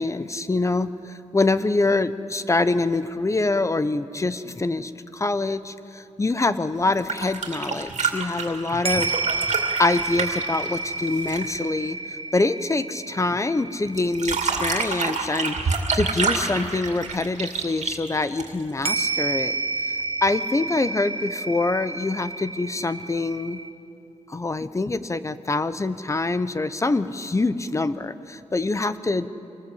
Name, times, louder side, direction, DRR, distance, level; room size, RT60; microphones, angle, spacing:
voice 1, 0.0-9.2 9.8-15.6 15.9-19.6 20.2-23.6 24.3-29.3, left 3 dB, 25° left, 13 dB, 0.7 m, -25 dB
sound 1, 6.9-11.6 14.0-18.8 20.3-20.4, right 4 dB, 65° right, 2.5 m, -28 dB
sound 2, 8.8-16.9 18.8-23.7, right 3 dB, 45° right, 1.1 m, -30 dB
25.0 x 20.0 x 7.9 m, 2.7 s
wide cardioid pair, 130°, 13 cm